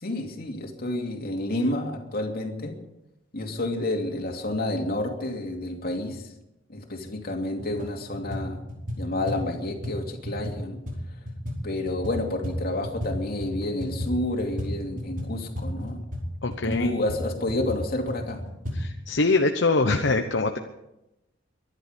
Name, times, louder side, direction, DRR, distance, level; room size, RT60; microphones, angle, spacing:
voice 1, 0.0-2.8 3.3-6.3 6.7-8.6 9.0-10.8 11.6-16.0 16.6-18.4, left 1 dB, 55° left, 3 dB, 2.7 m, -30 dB
sound 1, 7.0-7.1 7.5-7.9 8.1-13.1 13.4-18.8, equal, 45° right, 5.1 m, -33 dB
voice 2, 16.4-16.9 18.7-20.6, left 3 dB, 70° left, 5 dB, 1.0 m, -23 dB
23.5 x 11.0 x 5.3 m, 0.90 s
head